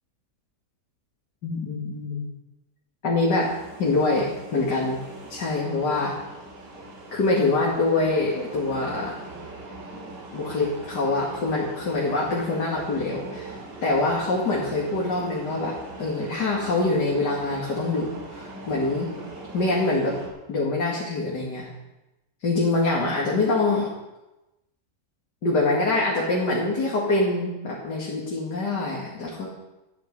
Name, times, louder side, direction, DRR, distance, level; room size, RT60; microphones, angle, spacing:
voice 1, 1.4-2.3 3.0-3.5 3.8-5.0 5.3-6.1 7.1-9.2 10.3-19.1 19.5-20.1 20.5-21.7 22.4-23.9 25.4-29.5, left 2 dB, 80° left, -4 dB, 2.9 m, -25 dB
sound 1, 3.4-20.3, right 2 dB, 80° right, 3.7 m, -41 dB
13.5 x 12.0 x 5.4 m, 1.0 s
omnidirectional pair, 1.8 m